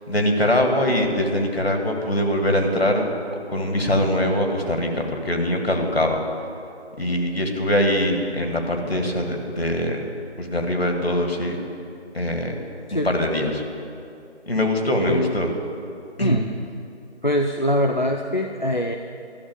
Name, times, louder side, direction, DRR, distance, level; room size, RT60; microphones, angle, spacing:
voice 1, 0.1-3.1 3.5-6.2 7.0-10.0 10.4-11.6 12.1-12.6 12.9-13.6 14.5-15.5 16.2-16.4, left 1 dB, 60° left, 2 dB, 2.0 m, -22 dB
voice 2, 15.1-15.4 16.2-16.5 17.2-19.0, left 1 dB, 45° left, 4 dB, 0.5 m, -23 dB
13.0 x 7.3 x 9.3 m, 2.5 s
figure-of-eight pair, 165°, 34 cm